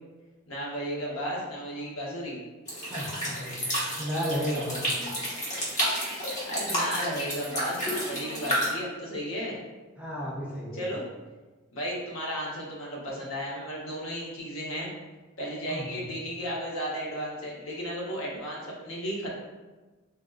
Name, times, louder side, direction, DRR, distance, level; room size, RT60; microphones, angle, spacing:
voice 1, 0.5-2.4 6.5-9.6 10.7-11.0 11.7-14.9 15.4-19.3, equal, 70° left, -3 dB, 0.9 m, -34 dB
sound 1, 2.7-8.7, equal, 35° left, 0.9 m, -31 dB
voice 2, 2.8-3.7 4.0-4.9 6.7-6.9 10.0-10.8 15.7-16.0, equal, 5° right, -6 dB, 0.5 m, -34 dB
3.5 x 2.6 x 2.4 m, 1.2 s
head